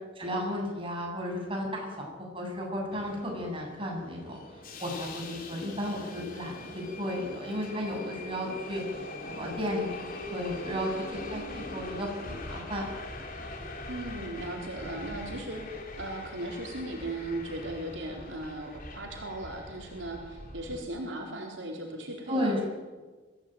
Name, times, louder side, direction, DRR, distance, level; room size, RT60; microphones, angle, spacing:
voice 1, 0.2-4.4 4.8-8.8 9.2-10.9 11.3-12.9 22.3-22.6, equal, 30° right, 0 dB, 7.6 m, -34 dB
Subway metro underground, 2.9-20.8, left 2 dB, 50° left, 3.8 m, -42 dB
voice 2, 13.9-22.5, right 1 dB, 80° right, 1 dB, 4.3 m, -37 dB
24.0 x 17.0 x 9.3 m, 1.3 s
head